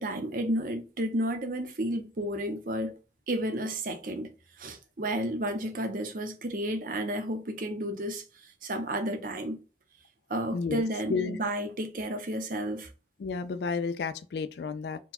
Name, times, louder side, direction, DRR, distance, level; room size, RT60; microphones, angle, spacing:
voice 1, 0.0-2.9 3.3-4.3 4.6-8.2 8.6-9.6 10.3-12.9, right 1 dB, 50° right, 0.7 m, -32 dB
voice 2, 10.5-10.8 11.1-11.4 13.2-15.0, left 5 dB, 65° left, 0.3 m, -31 dB
4.4 x 2.2 x 4.1 m
head